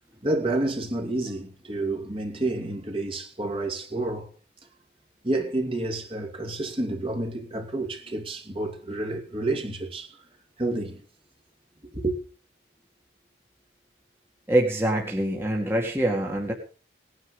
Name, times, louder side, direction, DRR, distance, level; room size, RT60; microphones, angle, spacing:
voice 1, 0.2-4.3 5.2-10.2 10.6-11.0 11.9-12.1, right 2 dB, 30° right, 2.5 m, -29 dB
voice 2, 14.5-16.5, right 1 dB, 10° right, 2.2 m, -24 dB
19.0 x 9.7 x 5.5 m
head